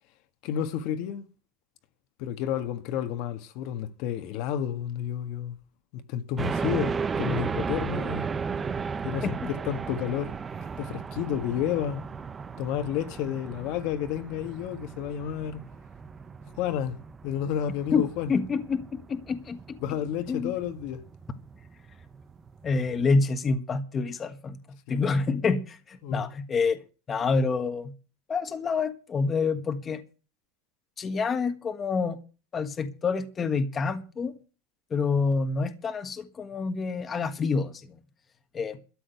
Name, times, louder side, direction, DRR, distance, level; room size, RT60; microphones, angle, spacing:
voice 1, 0.4-1.3 2.2-5.6 5.9-8.3 9.0-10.3 10.8-12.0 12.6-15.6 16.6-17.0 17.2-18.3 19.8-21.0 24.9-25.1 26.0-26.3, left 10 dB, 55° left, 1.5 m, -31 dB
sound 1, 6.4-23.1, right 5 dB, 20° right, 0.6 m, -35 dB
voice 2, 17.9-19.8 20.3-20.5 22.6-24.6 24.9-26.8 27.1-27.9 28.3-30.0 31.0-32.2 32.5-34.3 34.9-38.0 38.5-38.8, left 4 dB, 20° left, 1.5 m, -27 dB
13.0 x 7.7 x 9.1 m
supercardioid pair, 145°, 0 cm